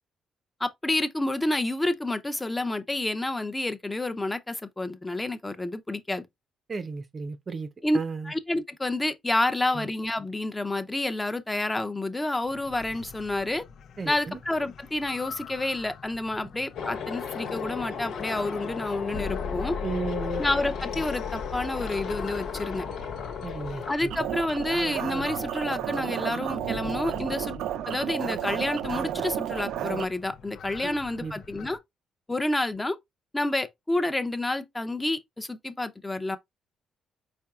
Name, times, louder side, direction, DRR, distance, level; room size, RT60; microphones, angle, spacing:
voice 1, 0.6-6.2 7.8-8.0 8.2-13.6 14.1-19.7 20.4-22.8 23.9-27.6 27.9-31.8 32.3-33.0 33.3-36.4, left 2 dB, 15° left, 0.7 m, -29 dB
voice 2, 6.7-7.7 7.9-8.3 9.7-9.9 14.0-14.4 19.8-20.4 23.4-24.1 30.8-31.4, right 4 dB, 35° right, 0.6 m, -34 dB
sound 1, 12.4-31.8, left 6 dB, 70° left, 0.6 m, -46 dB
sound 2, 16.7-23.9, left 6 dB, 85° left, 1.3 m, -34 dB
sound 3, 24.1-30.1, right 11 dB, 80° right, 0.3 m, -32 dB
4.6 x 4.4 x 2.4 m
cardioid pair, 90°, 0 cm